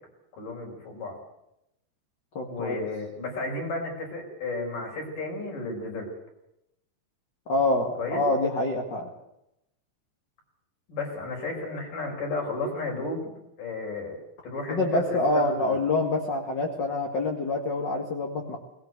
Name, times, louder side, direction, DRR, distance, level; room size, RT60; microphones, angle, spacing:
voice 1, 0.3-1.2 2.5-6.1 8.0-8.2 10.9-13.3 13.6-14.2 14.4-15.8, left 2 dB, 85° left, 1 dB, 6.9 m, -33 dB
voice 2, 2.3-2.8 7.5-9.1 14.7-18.6, left 2 dB, 40° left, 0 dB, 2.4 m, -26 dB
20.0 x 18.0 x 8.1 m, 0.84 s
omnidirectional pair, 3.7 m